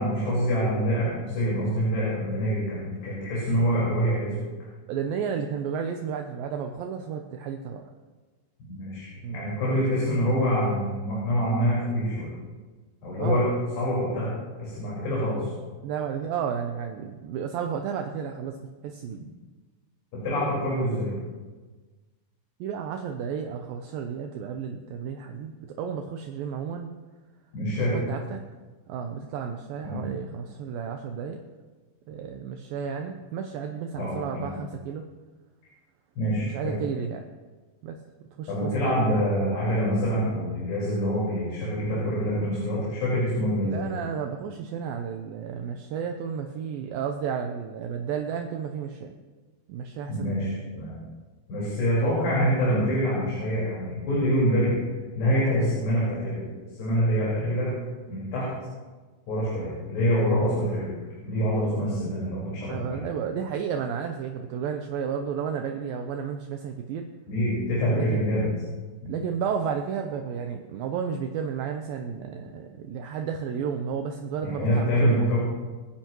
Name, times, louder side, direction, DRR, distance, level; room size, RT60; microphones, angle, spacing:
voice 1, 0.0-4.3 8.7-12.3 13.0-13.5 13.8-15.5 20.2-21.1 27.5-28.0 29.8-30.1 34.0-34.5 36.2-36.7 38.5-43.9 50.1-51.0 51.5-54.7 55.2-56.4 56.7-57.7 58.1-58.5 59.3-60.9 61.2-63.0 67.3-68.4 69.0-69.1 74.4-75.4, equal, 70° left, -7 dB, 6.8 m, -25 dB
voice 2, 4.9-7.9 9.2-9.4 9.8-9.9 13.2-13.4 15.8-19.3 22.6-26.9 27.8-28.4 28.9-31.4 32.1-35.1 36.4-37.3 37.8-38.0 38.4-39.1 43.6-49.1 49.7-50.5 62.7-67.1 68.0-68.2 69.1-75.3, right 7 dB, 80° right, 4 dB, 2.1 m, -32 dB
28.0 x 10.0 x 3.1 m, 1.3 s
omnidirectional pair, 4.9 m